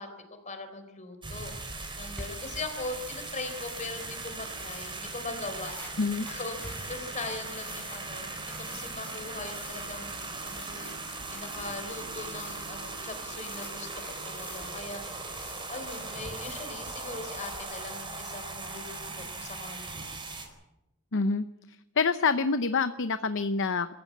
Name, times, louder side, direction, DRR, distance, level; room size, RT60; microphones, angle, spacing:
voice 1, 0.0-1.5 2.0-5.8 6.3-10.9 11.3-13.9 14.2-15.0 15.7-19.0 19.3-20.2, left 3 dB, 35° left, 8 dB, 3.8 m, -40 dB
sound 1, 1.2-20.5, right 3 dB, 20° right, 4.3 m, -39 dB
sound 2, 2.0-17.6, left 1 dB, 5° left, 4.4 m, -49 dB
voice 2, 21.1-21.5 22.0-23.9, left 4 dB, 60° left, 11 dB, 0.7 m, -26 dB
25.0 x 15.0 x 8.5 m, 0.97 s
head